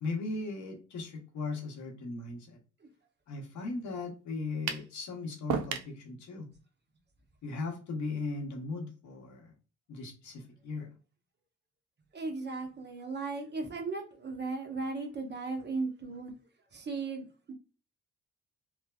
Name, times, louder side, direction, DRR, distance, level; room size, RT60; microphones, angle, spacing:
voice 1, 0.0-2.6 3.3-6.5 7.4-9.5 9.9-10.9, left 3 dB, 70° left, 0.9 m, -38 dB
sound 1, 4.7-4.9 5.5-5.9, right 8 dB, 75° right, 0.5 m, -32 dB
voice 2, 12.1-16.3 16.7-17.5, right 3 dB, 35° right, 0.8 m, -36 dB
3.2 x 2.1 x 2.3 m
cardioid pair, 90°, 30 cm